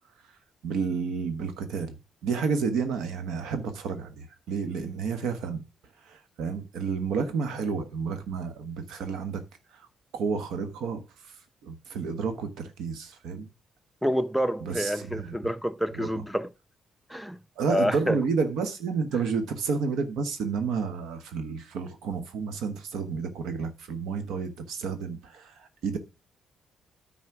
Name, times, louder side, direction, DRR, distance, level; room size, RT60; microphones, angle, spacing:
voice 1, 0.6-2.0 2.2-5.6 6.1-9.4 9.7-9.9 10.1-11.0 11.6-13.5 14.6-15.4 15.9-16.2 17.6-26.0, right 5 dB, 80° right, 1.3 m, -30 dB
voice 2, 14.0-16.5 17.1-17.4 17.7-18.2, equal, ahead, 0.7 m, -28 dB
9.6 x 4.2 x 6.0 m
cardioid pair, 90°, 0 cm